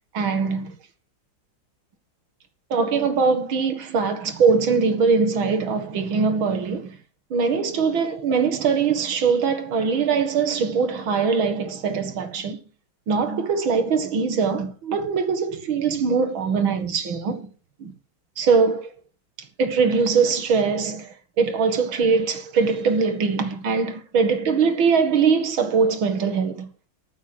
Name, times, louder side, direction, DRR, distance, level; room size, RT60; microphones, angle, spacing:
voice 1, 0.1-0.7 2.7-7.0 7.3-12.6 13.1-17.5 17.8-17.9 18.4-18.9 19.6-26.7, right 5 dB, 70° right, 2.5 m, -22 dB
14.5 x 7.2 x 6.1 m
omnidirectional pair, 2.3 m